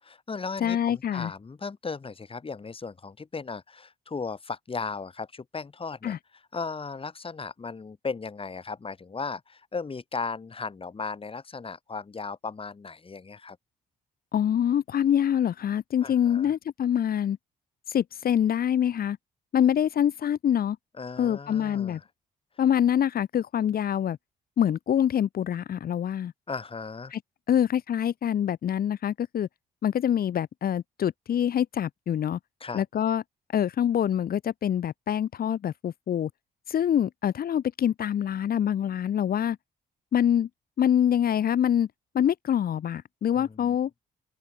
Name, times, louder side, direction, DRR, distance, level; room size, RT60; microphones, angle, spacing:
voice 1, 0.0-6.2 6.5-13.6 16.0-16.5 21.0-22.0 26.5-27.1 32.6-32.8 43.3-43.8, left 4 dB, 35° left, 7.0 m, -36 dB
voice 2, 0.6-1.3 6.0-6.2 14.3-17.4 17.9-19.2 19.5-20.8 21.2-22.0 22.6-24.2 24.6-26.3 27.1-27.2 27.5-29.5 29.8-32.4 32.7-33.2 33.5-36.3 36.7-39.6 40.1-40.5 40.8-41.9 42.1-43.9, left 9 dB, 65° left, 3.2 m, -25 dB
open air
cardioid pair, 80°, 17 cm